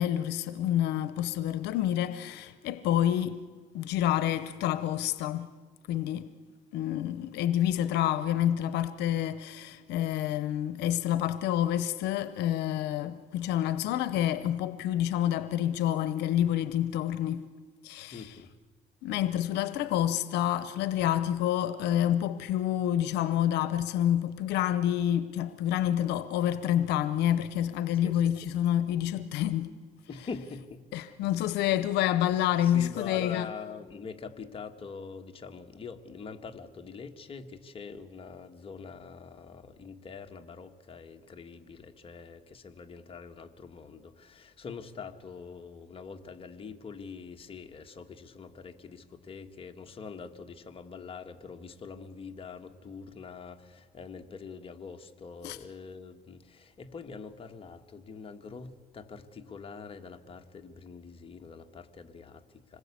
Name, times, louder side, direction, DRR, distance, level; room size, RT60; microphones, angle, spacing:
voice 1, 0.0-3.4 3.7-5.5 5.9-6.3 6.7-17.4 17.8-18.2 19.0-29.7 30.9-33.5 55.4-55.6, left 11 dB, 85° left, 0.8 m, -28 dB
voice 2, 18.1-18.5 28.0-28.3 30.1-31.0 32.3-62.8, left 5 dB, 35° left, 1.6 m, -44 dB
26.5 x 20.0 x 8.4 m
cardioid pair, 110°, 17 cm